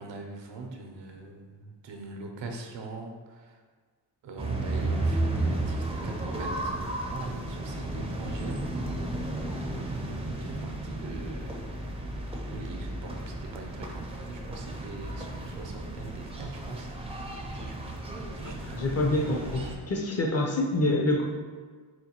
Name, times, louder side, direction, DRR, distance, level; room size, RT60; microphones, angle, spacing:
voice 1, 0.0-3.6 4.2-9.2 10.3-11.5 12.4-16.9 17.6-18.9 19.3-19.4, right 3 dB, 80° right, 3 dB, 0.6 m, -42 dB
sound 1, 4.4-19.8, right 2 dB, 15° right, 0.4 m, -33 dB
voice 2, 18.4-19.6 19.9-21.3, left 1 dB, 35° left, 1 dB, 0.5 m, -26 dB
4.2 x 2.2 x 2.8 m, 1.5 s
cardioid pair, 65°, 43 cm